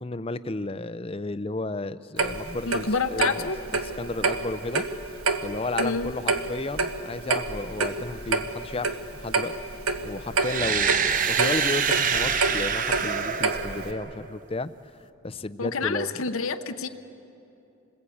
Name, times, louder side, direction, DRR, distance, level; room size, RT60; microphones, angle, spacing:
voice 1, 0.0-3.5 3.9-4.8 5.4-9.5 10.0-10.9 11.3-14.7 15.2-16.1, left 2 dB, 25° left, 14 dB, 0.5 m, -33 dB
Clock, 2.2-13.9, right 3 dB, 75° right, 1.5 m, -28 dB
voice 2, 2.6-3.6 5.8-6.1 15.6-16.9, left 4 dB, 65° left, 8 dB, 0.9 m, -28 dB
sound 1, 10.4-14.3, right 6 dB, 35° right, 0.9 m, -26 dB
27.5 x 21.0 x 8.6 m, 2.7 s
head